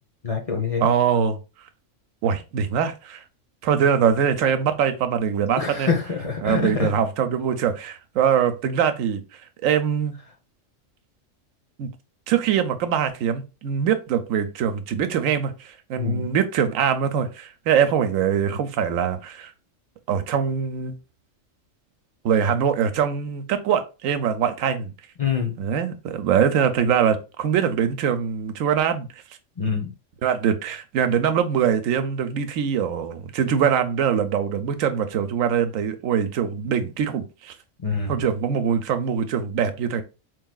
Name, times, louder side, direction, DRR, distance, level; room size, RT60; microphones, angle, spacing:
voice 1, 0.2-0.9 5.6-6.9 16.0-16.3 25.2-25.5 29.6-29.9 37.8-38.2, left 5 dB, 35° left, 0.8 m, -25 dB
voice 2, 0.8-1.4 2.2-3.2 3.6-5.9 6.4-9.2 9.6-10.2 11.8-11.9 12.3-19.5 20.1-21.0 22.2-24.9 25.6-29.1 30.2-37.5 38.1-40.0, right 8 dB, 90° right, 1.0 m, -23 dB
4.7 x 3.2 x 2.3 m
omnidirectional pair, 1.3 m